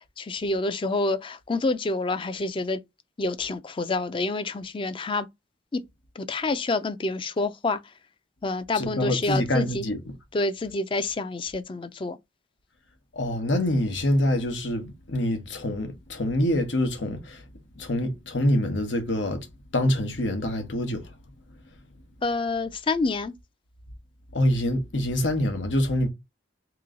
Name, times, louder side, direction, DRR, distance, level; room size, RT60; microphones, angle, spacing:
voice 1, 0.2-2.8 3.2-5.3 5.7-5.8 6.2-7.8 8.4-9.9 10.3-12.2 22.2-23.3, left 3 dB, 30° left, 0.4 m, -27 dB
voice 2, 8.8-10.0 13.2-17.4 17.8-19.5 19.7-21.0 24.3-26.1, left 1 dB, 90° left, 1.2 m, -25 dB
3.0 x 3.0 x 3.7 m
head